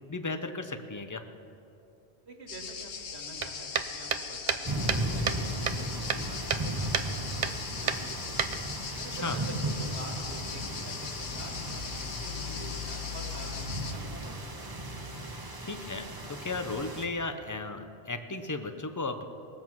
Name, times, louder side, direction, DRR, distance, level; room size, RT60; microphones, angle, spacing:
voice 1, 0.1-1.2 9.2-9.4 15.6-19.3, left 3 dB, 20° left, 8 dB, 0.5 m, -35 dB
voice 2, 2.3-8.6 9.0-14.7, right 2 dB, 80° right, 1 dB, 2.0 m, -47 dB
sound 1, 2.5-13.9, left 6 dB, 85° left, 1.2 m, -39 dB
sound 2, 3.4-5.4 5.7-6.7 6.9-7.1 7.4-7.6 7.9-8.9, right 7 dB, 50° right, 0.6 m, -30 dB
sound 3, 4.6-17.0, right 1 dB, 20° right, 0.9 m, -36 dB
20.0 x 7.5 x 6.0 m, 2.8 s
omnidirectional pair, 1.1 m